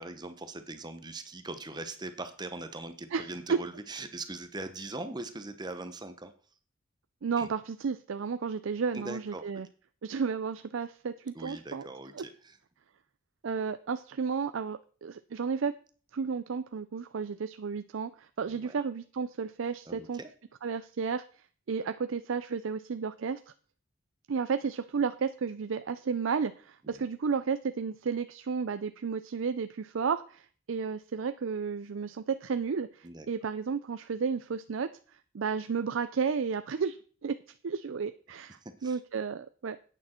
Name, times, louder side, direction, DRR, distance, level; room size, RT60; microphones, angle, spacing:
voice 1, 0.0-6.3 7.4-7.5 8.9-9.5 11.3-12.6 18.5-18.8 19.9-20.3 26.8-27.1 33.0-33.3 38.6-39.0, right 2 dB, 20° right, 9 dB, 0.9 m, -41 dB
voice 2, 3.1-3.6 7.2-9.7 10.0-11.9 12.1-12.2 13.4-15.8 16.1-20.2 20.6-21.2 21.7-23.4 24.3-34.9 35.3-37.4 37.6-39.8, right 5 dB, 75° right, 11 dB, 0.5 m, -32 dB
10.5 x 8.9 x 4.4 m, 0.42 s
head